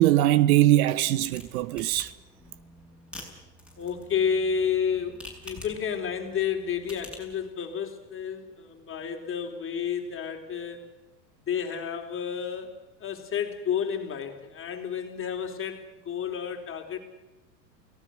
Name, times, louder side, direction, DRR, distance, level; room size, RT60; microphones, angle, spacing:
voice 1, 0.0-2.1, right 14 dB, 55° right, 1.0 m, -21 dB
sound 1, 1.0-7.4, left 1 dB, ahead, 7.3 m, -48 dB
voice 2, 3.8-10.9 11.5-12.7 13.0-17.0, left 7 dB, 25° left, 4.0 m, -31 dB
29.0 x 18.5 x 6.4 m
hypercardioid pair, 95°, 49 cm